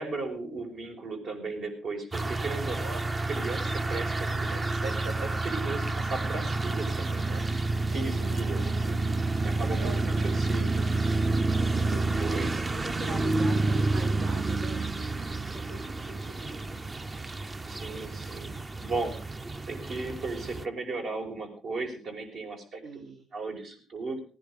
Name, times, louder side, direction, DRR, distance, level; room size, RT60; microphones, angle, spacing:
voice 1, 0.0-7.4 7.9-10.8 12.2-12.7 17.7-19.2 19.5-23.0 23.3-24.2, right 3 dB, 65° right, 2 dB, 5.5 m, -36 dB
sound 1, 2.1-20.6, right 3 dB, 25° right, 0.7 m, -29 dB
voice 2, 7.9-9.0 9.8-10.3 11.9-12.3 12.7-16.8 22.8-23.2, right 2 dB, 85° right, -1 dB, 3.1 m, -42 dB
19.0 x 10.5 x 5.1 m, 0.39 s
cardioid pair, 90°, 0 cm